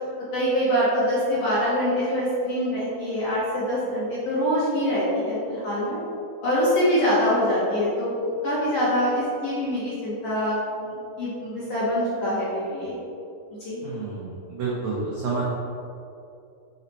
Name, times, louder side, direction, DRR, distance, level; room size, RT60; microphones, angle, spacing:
voice 1, 0.3-6.0 6.4-13.0 13.6-13.8, equal, 55° left, -10 dB, 1.9 m, -24 dB
voice 2, 13.8-15.4, right 4 dB, 85° right, -6 dB, 1.5 m, -29 dB
6.6 x 4.1 x 4.2 m, 2.6 s
omnidirectional pair, 4.5 m